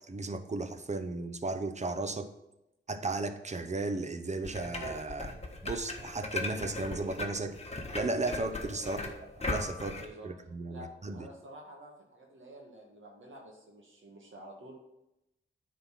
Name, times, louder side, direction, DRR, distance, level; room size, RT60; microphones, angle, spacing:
voice 1, 0.1-2.3 2.9-7.6 7.9-9.0 9.4-11.3, right 3 dB, 35° right, 9 dB, 0.8 m, -35 dB
sound 1, 4.4-10.0, left 2 dB, 30° left, 1.3 m, -38 dB
voice 2, 8.8-9.2 9.9-10.3 10.7-14.7, right 1 dB, 65° right, -2 dB, 1.9 m, -49 dB
9.6 x 4.4 x 5.9 m, 0.89 s
wide cardioid pair, 85°, 21 cm